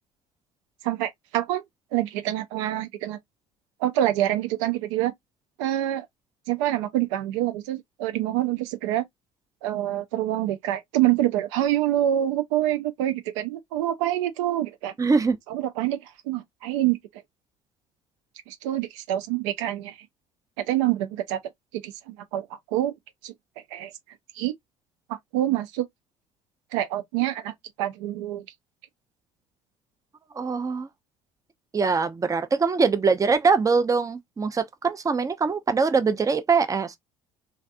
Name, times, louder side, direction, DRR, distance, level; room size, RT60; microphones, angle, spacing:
voice 1, 0.8-1.6 1.9-3.2 3.8-5.1 5.6-6.1 6.5-9.0 9.6-14.9 15.5-16.0 16.3-17.0 18.5-20.0 20.7-21.4 21.7-22.9 23.2-23.3 23.7-23.9 24.4-24.5 25.3-25.9 26.7-28.4, right 13 dB, 70° right, 0.5 m, -26 dB
voice 2, 15.0-15.4 30.4-30.9 31.7-37.0, right 4 dB, 20° right, 0.6 m, -23 dB
3.2 x 2.5 x 2.5 m
hypercardioid pair, 60°, 17 cm